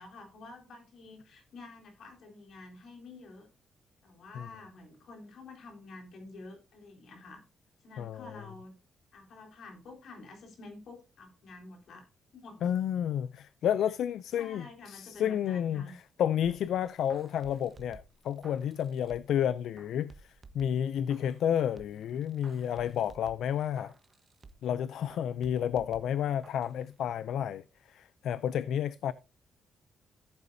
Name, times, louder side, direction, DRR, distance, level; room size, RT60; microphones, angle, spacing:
voice 1, 0.0-3.5 4.0-7.4 7.8-8.7 9.1-12.1 12.3-12.7 14.4-16.0, left 3 dB, 70° left, 3.7 m, -49 dB
voice 2, 8.0-8.4 12.6-23.9 24.6-29.1, left 9 dB, 85° left, 0.4 m, -31 dB
sound 1, 16.4-19.4 19.8-21.5 21.8-24.8 25.1-26.8 27.1-27.2, right 3 dB, 25° right, 1.1 m, -55 dB
15.0 x 8.3 x 2.7 m
cardioid pair, 135°, 0 cm